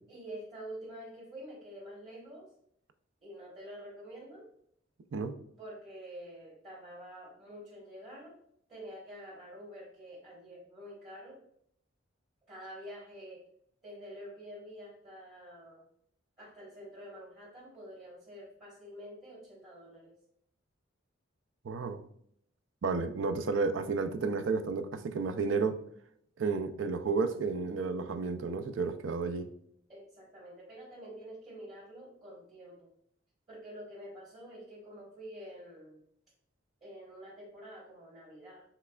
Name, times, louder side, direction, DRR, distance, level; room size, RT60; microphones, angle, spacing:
voice 1, 0.1-2.5 3.2-4.5 5.6-8.3 8.7-11.4 12.5-13.5 13.8-15.8 16.4-20.2 29.9-32.9 33.5-36.0 36.8-38.6, equal, 30° right, -7 dB, 1.4 m, -47 dB
voice 2, 21.6-22.0 22.8-25.8 26.4-29.5, right 4 dB, 70° right, 9 dB, 0.4 m, -32 dB
5.7 x 3.2 x 2.3 m, 0.68 s
head